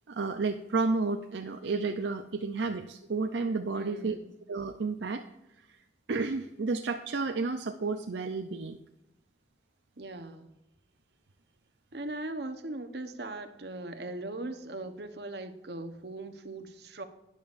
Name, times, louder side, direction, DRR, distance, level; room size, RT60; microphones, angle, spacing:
voice 1, 0.1-4.2 4.5-5.2 5.7-5.8 6.1-8.8, right 3 dB, 80° right, 6 dB, 0.5 m, -31 dB
voice 2, 3.8-4.3 10.0-10.5 11.9-17.0, right 2 dB, 65° right, 8 dB, 1.0 m, -39 dB
12.5 x 9.9 x 2.6 m, 0.93 s
head